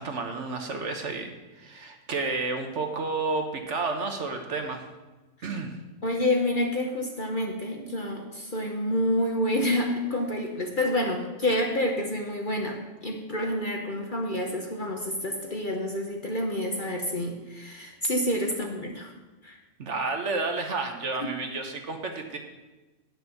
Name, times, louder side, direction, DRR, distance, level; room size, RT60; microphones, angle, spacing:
voice 1, 0.0-4.8 5.4-5.8 19.8-22.4, right 3 dB, 55° right, 4 dB, 1.2 m, -31 dB
voice 2, 6.0-19.1 19.4-19.6 21.2-21.3, left 1 dB, 40° left, 2 dB, 1.0 m, -28 dB
9.2 x 6.2 x 6.8 m, 1.2 s
omnidirectional pair, 1.6 m